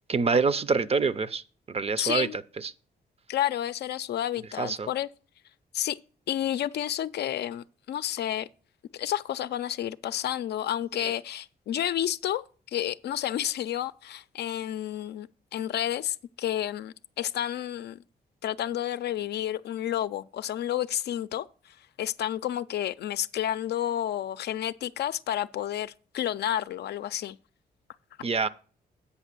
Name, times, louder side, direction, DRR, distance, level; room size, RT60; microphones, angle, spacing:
voice 1, 0.1-2.7 4.6-4.9 11.0-11.1 28.2-28.5, right 4 dB, 35° right, 0.5 m, -26 dB
voice 2, 2.0-2.4 3.3-5.1 5.7-6.0 6.3-8.5 8.9-18.0 18.4-27.4, left 11 dB, 75° left, 0.4 m, -30 dB
8.3 x 5.4 x 6.6 m
cardioid pair, 95°, 17 cm